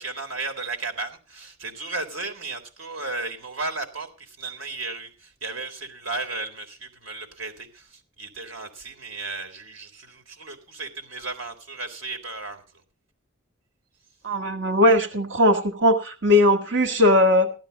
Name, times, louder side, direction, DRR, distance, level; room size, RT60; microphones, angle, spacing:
voice 1, 0.0-12.6, right 3 dB, 85° right, 5 dB, 3.7 m, -34 dB
voice 2, 14.2-17.5, left 1 dB, 60° right, 4 dB, 1.9 m, -19 dB
16.0 x 12.5 x 4.1 m, 0.34 s
head